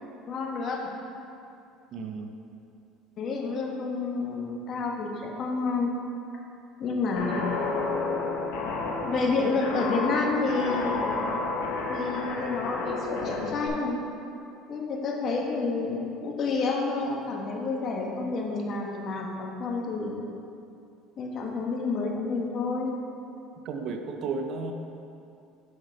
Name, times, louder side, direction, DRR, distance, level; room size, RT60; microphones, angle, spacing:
voice 1, 0.3-0.9 3.2-5.9 6.8-7.6 9.0-14.0 14.7-20.3 21.2-22.9, left 3 dB, 45° left, 0 dB, 1.3 m, -29 dB
voice 2, 1.9-2.3 23.6-24.7, right 4 dB, 55° right, 5 dB, 0.7 m, -33 dB
Guitar, 7.2-13.7, left 3 dB, 70° left, 1.3 m, -31 dB
7.9 x 5.8 x 4.5 m, 2.6 s
supercardioid pair, 105°, 0 cm